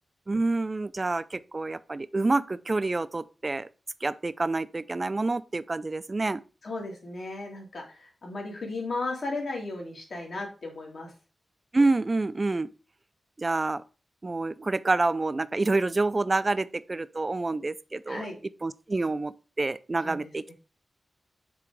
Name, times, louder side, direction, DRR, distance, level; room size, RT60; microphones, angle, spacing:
voice 1, 0.3-3.7 4.0-6.4 11.7-12.7 13.4-13.8 14.2-18.2 18.6-20.5, right 3 dB, 35° right, 0.4 m, -27 dB
voice 2, 6.6-11.1 18.1-18.4 20.0-20.5, left 2 dB, 65° left, 2.3 m, -35 dB
6.0 x 3.6 x 4.6 m
wide cardioid pair, 75°, 0 cm